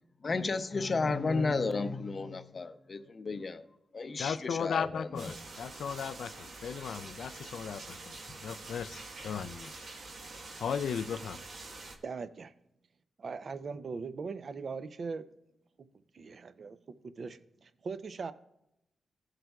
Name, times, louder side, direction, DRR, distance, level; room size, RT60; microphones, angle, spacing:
voice 1, 0.2-3.6 3.9-5.4 9.3-9.4, left 3 dB, 35° left, 0.6 m, -33 dB
voice 2, 4.2-8.0 8.4-9.7 10.6-11.4, left 7 dB, 75° left, 0.4 m, -36 dB
sound 1, 5.2-12.0, right 3 dB, 75° right, 1.3 m, -46 dB
voice 3, 12.0-12.5 13.2-15.3 16.1-16.8 17.0-18.3, right 4 dB, 50° right, 0.5 m, -40 dB
16.5 x 7.8 x 2.3 m
wide cardioid pair, 120°, 0 cm